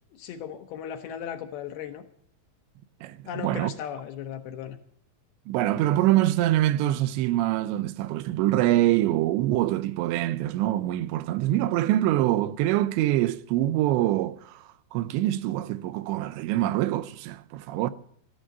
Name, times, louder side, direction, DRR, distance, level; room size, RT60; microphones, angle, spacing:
voice 1, 0.1-2.1 3.3-4.8, left 9 dB, 75° left, 2.4 m, -36 dB
voice 2, 3.0-3.7 5.5-17.9, right 14 dB, 85° right, 2.9 m, -25 dB
13.5 x 11.5 x 6.5 m
omnidirectional pair, 5.1 m